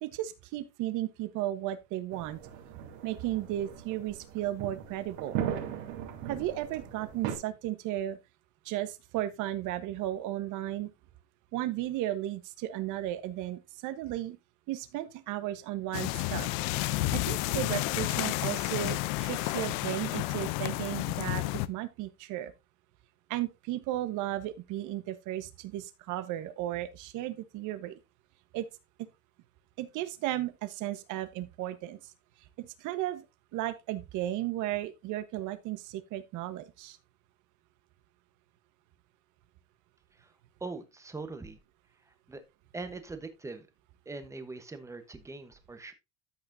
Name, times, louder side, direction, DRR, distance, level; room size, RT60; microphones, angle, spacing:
voice 1, 0.0-2.4 3.0-5.4 6.3-8.2 8.6-10.9 11.5-14.4 14.7-16.5 17.1-22.5 23.3-28.0 28.5-28.6 29.0-29.1 29.8-32.0 32.6-33.2 33.5-37.0, right 14 dB, 45° right, 1.2 m, -34 dB
sound 1, 2.1-7.3, right 9 dB, 65° right, 3.6 m, -38 dB
sound 2, 15.9-21.7, left 18 dB, 60° left, 0.7 m, -31 dB
voice 2, 40.6-41.6 42.3-42.4 42.7-43.7 44.0-45.9, right 3 dB, 5° right, 1.1 m, -41 dB
13.5 x 5.8 x 2.7 m
supercardioid pair, 145°, 40 cm